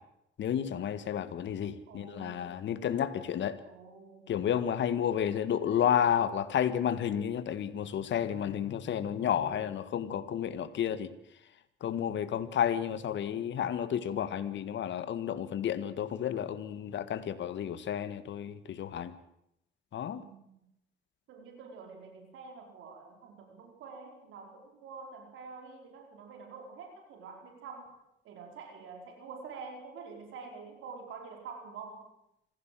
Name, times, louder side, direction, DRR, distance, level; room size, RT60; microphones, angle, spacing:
voice 1, 0.4-3.6 4.3-11.1 11.8-19.1 19.9-20.2, left 9 dB, 70° left, 12 dB, 1.9 m, -31 dB
voice 2, 1.9-2.6 3.7-4.4 5.6-6.1 9.2-9.6 20.1-20.5 21.3-27.9 28.2-32.1, right 5 dB, 85° right, 2 dB, 5.0 m, -47 dB
25.5 x 16.5 x 7.8 m, 0.80 s
cardioid pair, 90°, 20 cm